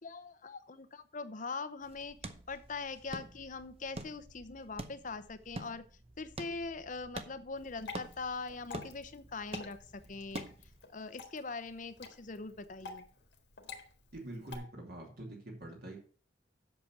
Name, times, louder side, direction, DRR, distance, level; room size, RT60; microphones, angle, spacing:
voice 1, 0.0-2.2 2.5-5.8 6.2-10.5 10.9-13.1, left 4 dB, 45° left, 11 dB, 0.8 m, -42 dB
sound 1, 1.8-10.8, right 2 dB, 35° right, 0.8 m, -47 dB
Water / Drip, 7.6-14.6, left 5 dB, 75° left, 1.7 m, -50 dB
voice 2, 14.1-16.0, right 1 dB, 55° right, 0 dB, 2.6 m, -45 dB
7.9 x 6.6 x 6.0 m, 0.40 s
head